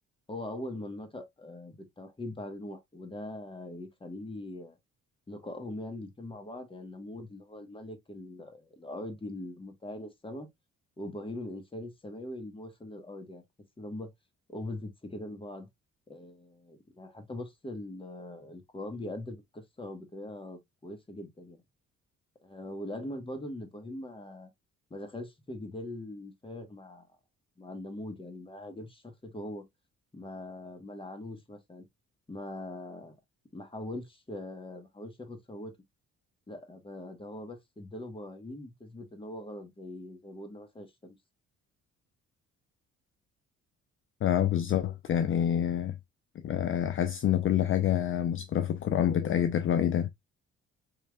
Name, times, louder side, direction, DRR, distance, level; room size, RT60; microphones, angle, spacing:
voice 1, 0.3-4.8 5.3-10.5 11.0-13.4 13.8-14.1 14.5-15.7 16.1-21.6 22.4-24.5 24.9-27.1 27.6-29.6 30.1-31.8 32.3-33.2 33.5-35.8 36.5-41.2, left 1 dB, 15° left, 1.2 m, -41 dB
voice 2, 44.2-46.0 46.4-50.1, left 10 dB, 45° left, 0.5 m, -27 dB
4.8 x 3.2 x 2.2 m
cardioid pair, 90°, 30 cm